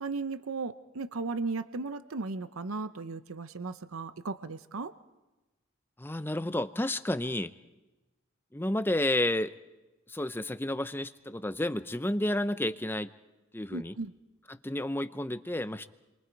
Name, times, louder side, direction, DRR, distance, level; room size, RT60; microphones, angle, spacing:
voice 1, 0.0-4.9 13.7-14.1, right 3 dB, 75° right, 12 dB, 0.8 m, -36 dB
voice 2, 6.0-7.5 8.5-9.5 10.1-13.1 13.5-13.9 14.5-15.9, left 1 dB, 10° left, 12 dB, 0.7 m, -31 dB
30.0 x 24.0 x 4.7 m, 1.1 s
head